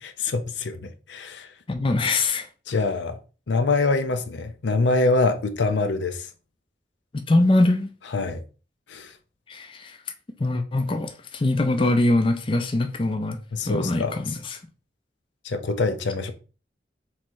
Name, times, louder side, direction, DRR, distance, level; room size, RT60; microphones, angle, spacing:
voice 1, 0.0-1.5 2.7-3.2 3.5-6.3 8.1-8.4 8.9-9.2 13.5-14.2 15.4-16.3, left 3 dB, 85° left, 0.6 m, -25 dB
voice 2, 1.7-2.5 7.1-7.9 9.5-10.0 10.4-13.4 13.7-14.6, left 2 dB, 30° left, 0.4 m, -23 dB
3.6 x 3.1 x 4.4 m
head